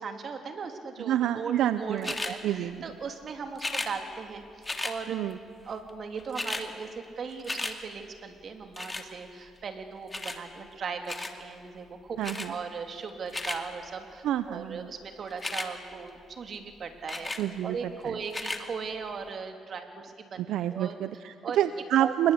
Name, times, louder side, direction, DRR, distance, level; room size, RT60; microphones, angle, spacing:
voice 1, 0.0-5.1 5.6-12.2 12.5-17.3 17.6-20.4 20.7-20.9 21.4-21.6 22.0-22.1, right 5 dB, 55° right, 5 dB, 3.0 m, -38 dB
voice 2, 1.0-2.1 2.4-2.8 5.1-5.4 12.2-12.5 14.2-14.9 17.4-18.2 20.5-22.3, right 11 dB, 85° right, 12 dB, 0.6 m, -28 dB
sound 1, 2.0-2.3 3.5-3.9 4.6-5.0 5.9-6.0 6.2-6.7 7.0-7.8 8.8-9.1 10.1-10.4 11.1-11.4 12.2-12.5 13.1-13.6 15.3-15.7 17.1-17.4 18.2-18.6 19.3-19.4, left 2 dB, 20° left, 2.3 m, -34 dB
27.0 x 21.5 x 8.4 m, 2.3 s
cardioid pair, 90°, 0 cm